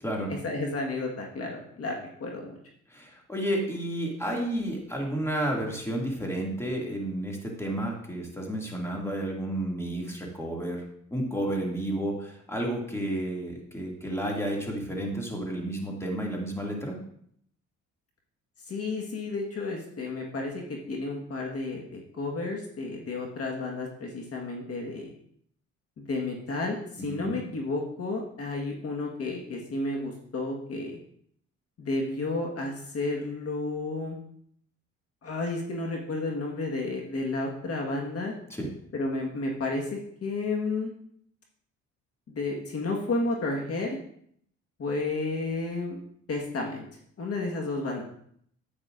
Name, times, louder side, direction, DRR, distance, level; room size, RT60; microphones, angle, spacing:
voice 1, 0.3-1.9 2.2-2.6 18.7-25.1 26.0-31.0 31.8-34.2 35.2-38.3 38.9-40.9 42.3-44.0 44.8-46.0 46.3-46.8 47.2-48.0, left 3 dB, 50° left, 0 dB, 1.5 m, -32 dB
voice 2, 2.9-10.8 11.1-17.0 27.0-27.4 38.5-38.7, right 1 dB, 10° left, -1 dB, 2.2 m, -31 dB
9.8 x 8.5 x 2.5 m, 0.67 s
cardioid pair, 90°, 30 cm